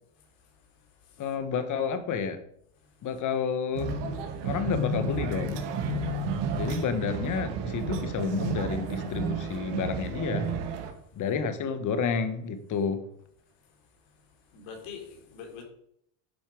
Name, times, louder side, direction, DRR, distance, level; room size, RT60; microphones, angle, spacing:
voice 1, 1.2-2.4 3.0-3.9 4.4-5.6 6.5-10.5 11.1-13.0, left 6 dB, 40° left, 1.4 m, -30 dB
sound 1, 3.7-10.9, right 3 dB, 60° right, 2.1 m, -32 dB
voice 2, 14.5-15.6, left 6 dB, 65° left, 3.7 m, -43 dB
11.0 x 7.4 x 4.8 m
cardioid pair, 140°, 48 cm